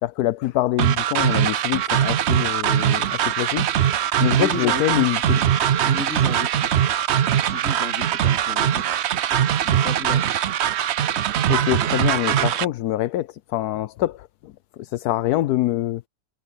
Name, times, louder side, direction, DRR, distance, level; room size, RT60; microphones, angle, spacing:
voice 1, 0.0-3.6 4.2-5.4 11.5-14.5 14.8-16.0, left 15 dB, 85° left, 1.2 m, -25 dB
sound 1, 0.8-12.6, right 10 dB, 60° right, 0.8 m, -21 dB
voice 2, 4.3-5.1 5.6-6.7 7.3-8.8 9.4-10.3, left 3 dB, 55° left, 2.9 m, -33 dB
omnidirectional pair, 1.6 m